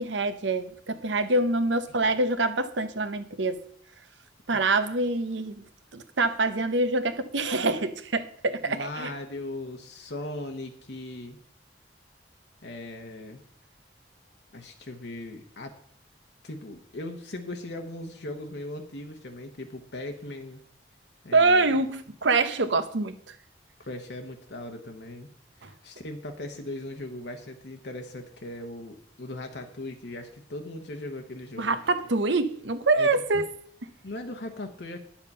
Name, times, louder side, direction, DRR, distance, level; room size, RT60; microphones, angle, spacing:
voice 1, 0.0-3.6 4.5-5.6 5.9-9.1 21.3-23.3 25.6-25.7 31.6-33.5, right 3 dB, 80° right, 0.9 m, -25 dB
voice 2, 8.6-11.4 12.6-13.4 14.5-15.7 16.4-20.6 21.2-21.8 23.8-25.3 25.6-31.8 32.9-33.1 34.0-35.0, left 1 dB, 65° left, 1.0 m, -38 dB
10.5 x 7.3 x 5.5 m
head